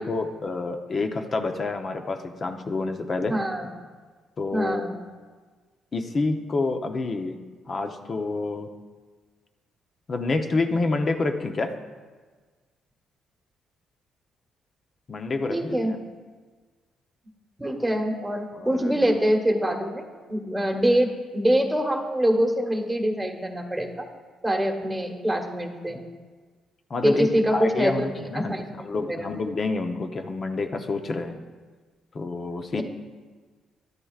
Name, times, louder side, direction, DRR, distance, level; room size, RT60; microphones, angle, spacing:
voice 1, 0.0-3.3 4.4-4.9 5.9-7.4 7.7-8.7 10.1-11.7 15.1-16.0 18.5-19.1 26.9-31.4 32.1-32.8, left 3 dB, 40° left, 6 dB, 0.8 m, -28 dB
voice 2, 3.3-3.7 4.5-5.0 15.5-15.9 17.6-24.0 24.4-26.0 27.0-28.1 28.3-28.7 29.1-29.3, equal, 5° right, 2 dB, 1.2 m, -24 dB
12.0 x 9.6 x 2.4 m, 1.4 s
cardioid pair, 90°, 0 cm